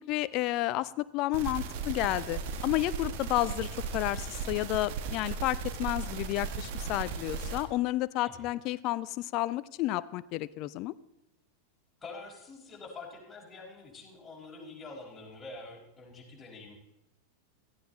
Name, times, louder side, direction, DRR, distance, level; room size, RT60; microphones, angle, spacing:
voice 1, 0.1-10.9, left 16 dB, 40° left, 17 dB, 0.6 m, -31 dB
sound 1, 1.3-7.7, right 5 dB, 50° right, 1.7 m, -36 dB
voice 2, 12.0-16.8, left 3 dB, 15° left, -2 dB, 5.1 m, -46 dB
17.0 x 15.0 x 4.0 m, 0.90 s
figure-of-eight pair, 90°, 0 cm